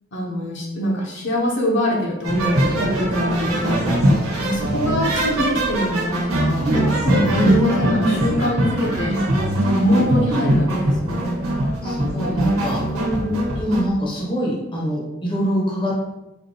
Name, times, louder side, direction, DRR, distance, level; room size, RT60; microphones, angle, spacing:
voice 1, 0.1-3.9 4.4-6.7 7.0-9.2 9.7-11.4 12.9-13.4, equal, 55° left, -3 dB, 0.7 m, -24 dB
sound 1, 2.2-13.8, right 1 dB, 85° right, 1.2 m, -21 dB
voice 2, 11.8-12.8 13.6-16.1, equal, 25° left, -3 dB, 0.8 m, -24 dB
4.3 x 2.6 x 2.8 m, 0.95 s
head